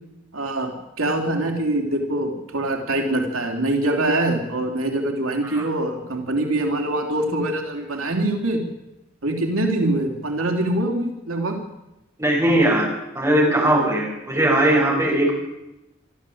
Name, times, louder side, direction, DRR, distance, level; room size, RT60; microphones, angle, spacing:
voice 1, 0.3-8.6 9.2-11.6, right 1 dB, 90° right, 2 dB, 3.5 m, -24 dB
voice 2, 12.2-12.9 13.1-15.3, right 1 dB, 15° right, -2 dB, 6.0 m, -19 dB
24.5 x 13.0 x 8.7 m, 0.93 s
head